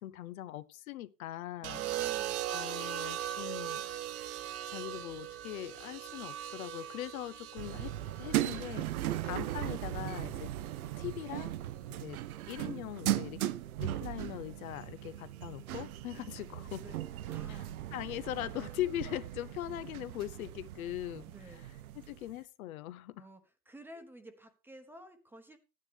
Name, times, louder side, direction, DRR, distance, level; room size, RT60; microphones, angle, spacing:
voice 1, 0.0-2.1 2.5-3.8 4.7-7.9 8.2-10.5 11.0-11.5 11.9-12.2 12.5-13.4 13.8-16.8 17.5-21.6 21.9-23.3, left 14 dB, 65° left, 0.9 m, -41 dB
voice 2, 1.6-2.4 16.8-17.7 21.3-21.6 23.2-23.4 23.7-25.6, right 1 dB, 5° right, 1.1 m, -52 dB
sound 1, 1.6-9.8 11.0-11.4, right 12 dB, 35° right, 0.7 m, -39 dB
sound 2, 7.6-22.4, right 13 dB, 70° right, 0.8 m, -38 dB
12.5 x 9.6 x 3.4 m
hypercardioid pair, 135°, 45 cm